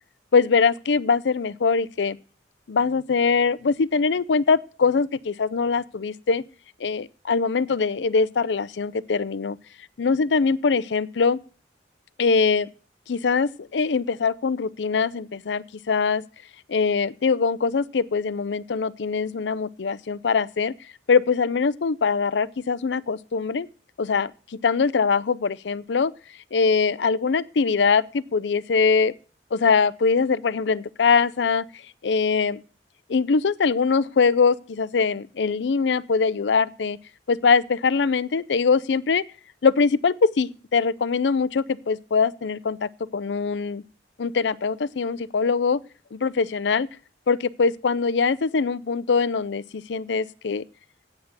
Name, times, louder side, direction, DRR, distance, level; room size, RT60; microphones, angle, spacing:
voice 1, 0.3-2.2 2.7-6.4 6.8-9.6 10.0-11.4 12.2-12.7 13.1-16.2 16.7-20.7 21.1-23.7 24.0-26.1 26.5-29.1 29.5-31.6 32.0-32.6 33.1-37.0 37.3-39.2 39.6-43.8 44.2-45.8 46.1-46.9 47.3-50.6, left 5 dB, 90° left, 0.5 m, -22 dB
9.1 x 8.1 x 6.6 m
head